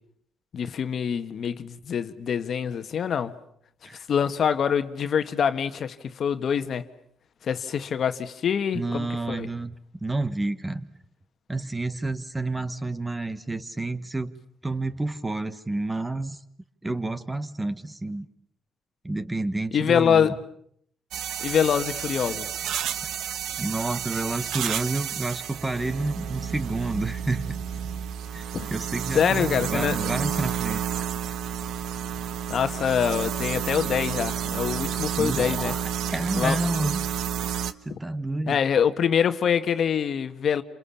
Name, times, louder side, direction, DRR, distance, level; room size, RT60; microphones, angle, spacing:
voice 1, 0.5-3.3 4.1-6.9 7.4-9.5 19.7-20.4 21.4-22.5 28.5-28.7 29.1-30.3 32.5-35.7 36.3-36.6 38.5-40.6, left 8 dB, 50° left, 1.5 m, -25 dB
voice 2, 8.7-9.7 10.0-10.9 11.5-14.3 14.6-16.4 16.8-18.3 19.0-20.4 23.6-27.6 28.3-28.4 28.7-31.0 35.2-37.0 37.8-38.6, right 2 dB, 10° right, 1.3 m, -29 dB
sound 1, 21.1-37.7, right 9 dB, 75° right, 1.4 m, -31 dB
29.0 x 27.5 x 7.2 m
cardioid pair, 120°, 0 cm